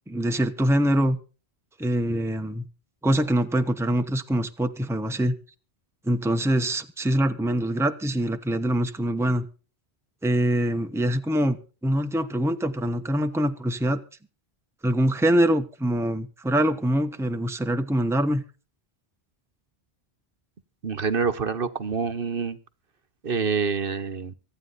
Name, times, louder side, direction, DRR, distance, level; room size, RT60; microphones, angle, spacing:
voice 1, 0.1-1.2 1.8-2.7 3.0-5.3 6.1-9.5 10.2-11.6 11.8-14.0 14.8-18.4, right 1 dB, 5° right, 7 dB, 1.0 m, -24 dB
voice 2, 20.8-22.6 23.2-24.3, right 5 dB, 60° right, 11 dB, 1.2 m, -26 dB
25.0 x 9.2 x 4.1 m, 0.36 s
omnidirectional pair, 1.1 m